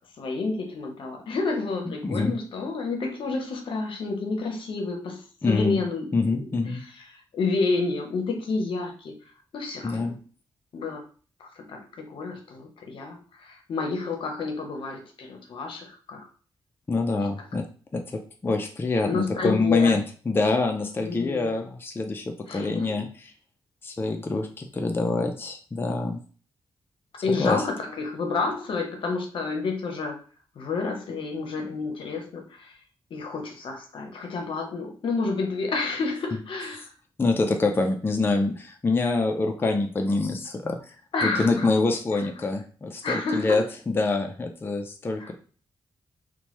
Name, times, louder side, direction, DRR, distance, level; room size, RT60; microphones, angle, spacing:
voice 1, 0.2-6.1 6.7-9.1 9.5-10.1 10.7-11.0 11.4-16.3 19.1-20.0 21.0-21.5 22.4-23.0 27.2-30.2 30.6-32.8 33.1-36.9 41.1-41.7 43.0-43.6 45.2-45.3, left 3 dB, 70° left, 3 dB, 0.6 m, -30 dB
voice 2, 2.0-2.4 5.4-5.8 6.1-6.8 9.8-10.2 16.9-17.6 17.9-23.1 23.8-26.2 27.4-27.6 31.6-31.7 37.2-41.0 41.2-45.3, left 3 dB, 25° left, 3 dB, 0.4 m, -25 dB
2.8 x 2.2 x 3.0 m, 0.41 s
cardioid pair, 85°, 9 cm